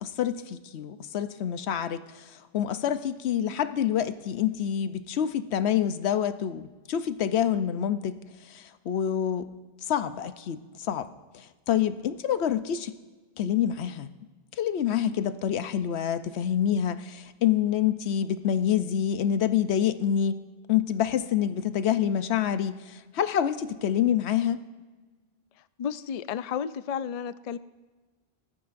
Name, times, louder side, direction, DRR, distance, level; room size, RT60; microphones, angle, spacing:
voice 1, 0.0-2.2 2.5-8.2 8.5-9.5 9.9-11.1 11.3-12.9 13.4-14.1 14.6-20.4 20.7-24.6, left 9 dB, 90° left, 12 dB, 1.0 m, -27 dB
voice 2, 25.8-27.6, left 7 dB, 55° left, 14 dB, 0.4 m, -32 dB
20.0 x 14.0 x 2.6 m, 1.3 s
omnidirectional pair, 1.1 m